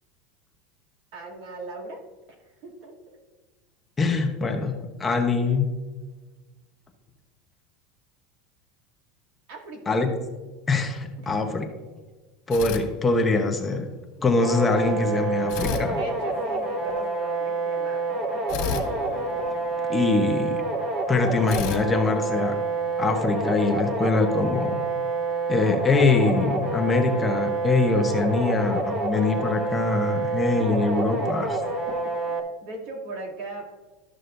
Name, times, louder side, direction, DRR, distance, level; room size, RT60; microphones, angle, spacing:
voice 1, 1.1-2.0 2.6-3.2 9.5-10.0 11.2-11.4 15.9-18.5 18.8-18.9 27.0-27.2 28.8-29.1 29.4-29.5 30.6-30.8 31.2-32.0 32.3-33.7, right 2 dB, 70° right, -1 dB, 2.6 m, -40 dB
voice 2, 4.0-4.7 5.0-5.7 9.9-10.1 10.7-11.7 12.5-13.9 14.2-16.0 19.9-20.6 21.1-22.6 23.0-24.8 25.5-31.6, left 3 dB, 15° left, 4 dB, 0.9 m, -23 dB
sound 1, 12.5-13.6 15.5-16.9 18.5-20.2 21.5-23.0, left 7 dB, 60° left, 1.7 m, -34 dB
sound 2, 14.4-32.4, right 3 dB, 35° right, 1.1 m, -28 dB
12.5 x 6.3 x 2.6 m, 1.3 s
supercardioid pair, 145°, 0 cm